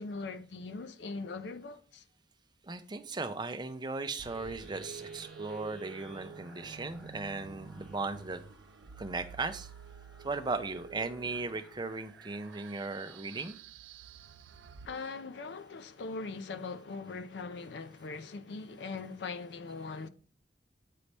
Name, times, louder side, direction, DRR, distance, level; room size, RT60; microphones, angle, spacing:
voice 1, 0.0-2.0 14.8-20.1, left 4 dB, 70° left, 0.5 m, -41 dB
voice 2, 2.6-8.4 9.0-9.7 10.2-13.6, right 3 dB, 25° right, 0.5 m, -37 dB
sound 1, 4.1-13.6, equal, 5° left, 1.1 m, -58 dB
sound 2, 4.2-14.9, right 6 dB, 80° right, 0.4 m, -49 dB
8.4 x 4.0 x 3.3 m
head